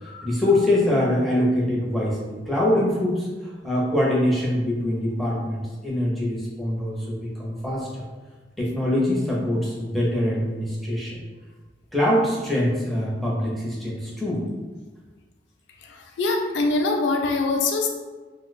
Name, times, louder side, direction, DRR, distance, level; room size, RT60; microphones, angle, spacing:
voice 1, 0.0-8.0 8.6-11.2 11.9-14.4, left 1 dB, ahead, -5 dB, 0.7 m, -24 dB
voice 2, 15.8-17.9, left 3 dB, 75° left, 3 dB, 0.4 m, -24 dB
2.8 x 2.1 x 4.0 m, 1.3 s
head